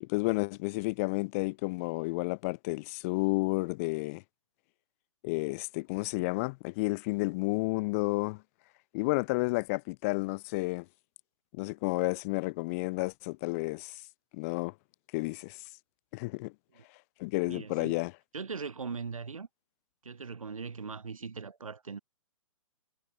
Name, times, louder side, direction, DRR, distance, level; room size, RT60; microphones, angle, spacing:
voice 1, 0.0-4.2 5.2-8.4 8.9-10.9 11.5-13.9 14.3-14.7 15.1-15.6 16.1-16.5 17.2-18.1, left 25 dB, 25° left, 0.4 m, -31 dB
voice 2, 17.4-18.0 18.3-19.5 20.0-22.0, right 5 dB, 75° right, 7.2 m, -40 dB
figure-of-eight pair, 125°, 18 cm